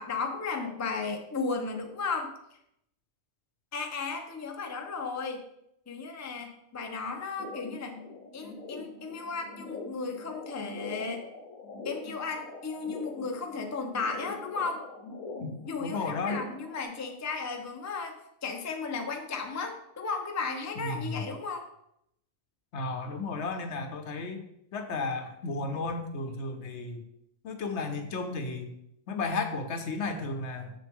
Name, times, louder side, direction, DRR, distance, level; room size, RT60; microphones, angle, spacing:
voice 1, 0.0-2.3 3.7-5.4 5.9-8.0 8.3-11.2 11.8-14.8 15.6-18.1 18.4-21.6, left 4 dB, 20° left, 4 dB, 0.5 m, -34 dB
sound 1, 7.4-16.8, left 3 dB, 80° left, 1.2 m, -43 dB
voice 2, 15.8-16.4 20.8-21.1 22.7-24.4 24.7-27.0 27.4-28.7 29.1-30.7, left 3 dB, 60° left, 6 dB, 1.0 m, -33 dB
7.0 x 6.1 x 3.6 m, 0.78 s
omnidirectional pair, 1.4 m